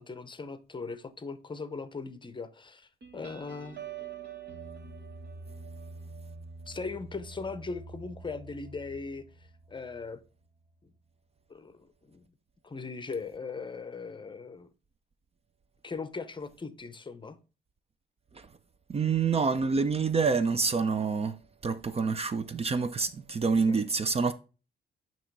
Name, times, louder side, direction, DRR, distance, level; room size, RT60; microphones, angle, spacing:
voice 1, 0.0-3.9 6.7-9.2 9.7-10.2 11.5-12.2 12.6-14.7 15.8-17.4 23.7-23.8, left 4 dB, 25° left, 0.7 m, -39 dB
sound 1, 3.0-10.2, right 5 dB, 60° right, 1.9 m, -45 dB
voice 2, 18.9-21.3 21.6-24.3, right 5 dB, 30° right, 0.5 m, -27 dB
8.6 x 3.0 x 4.6 m
cardioid pair, 90°, 20 cm